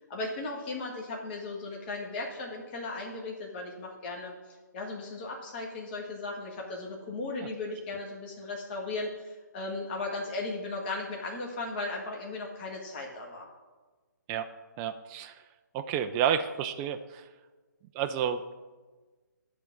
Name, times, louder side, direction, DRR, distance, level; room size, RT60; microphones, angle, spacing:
voice 1, 0.1-4.3 4.7-13.5, left 3 dB, 30° left, -1 dB, 1.8 m, -36 dB
voice 2, 14.8-15.4 15.7-17.3 17.9-18.4, right 9 dB, 15° right, 7 dB, 0.4 m, -30 dB
10.5 x 3.9 x 7.1 m, 1.3 s
hypercardioid pair, 150°, 10 cm